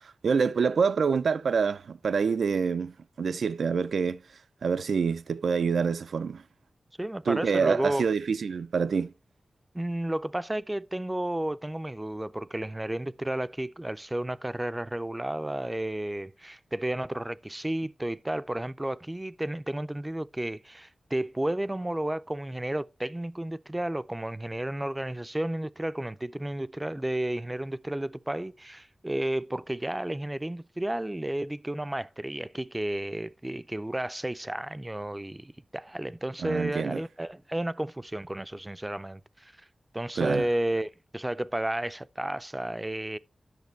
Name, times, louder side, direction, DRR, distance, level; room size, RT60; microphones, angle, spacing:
voice 1, 0.2-4.2 4.6-6.4 7.3-9.1 36.4-37.0 40.2-40.4, right 5 dB, 90° right, 0.3 m, -26 dB
voice 2, 7.0-8.1 9.7-39.5 39.9-43.2, right 1 dB, 15° right, 0.3 m, -32 dB
10.5 x 6.5 x 3.1 m
wide cardioid pair, 115°, 0 cm